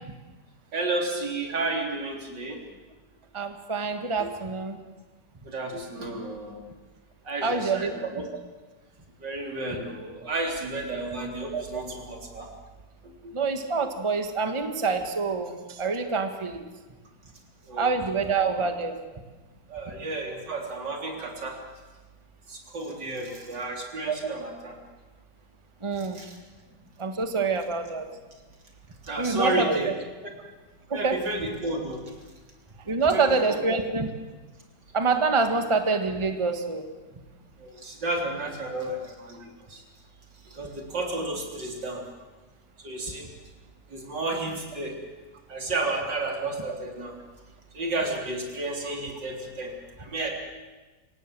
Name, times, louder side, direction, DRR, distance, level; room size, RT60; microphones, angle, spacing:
voice 1, 0.7-2.6 4.2-4.3 5.4-6.6 7.2-8.2 9.2-12.5 13.0-13.3 17.7-17.9 18.4-18.5 19.7-21.6 22.5-24.8 26.0-26.4 29.0-29.9 30.2-30.3 30.9-32.0 32.9-33.2 33.7-33.8 35.5-35.6 37.6-39.8 40.4-42.0 42.8-43.3 43.9-45.0 45.5-47.2 47.7-50.3, right 2 dB, 80° right, 1 dB, 4.3 m, -32 dB
voice 2, 3.3-4.8 7.4-7.9 11.5-11.8 13.3-16.6 17.7-18.9 24.1-24.2 25.8-26.2 27.0-28.1 29.2-29.9 30.9-31.2 32.9-34.1 34.9-36.8, right 4 dB, 20° right, 6 dB, 1.5 m, -26 dB
26.0 x 18.0 x 7.7 m, 1.2 s
omnidirectional pair, 1.9 m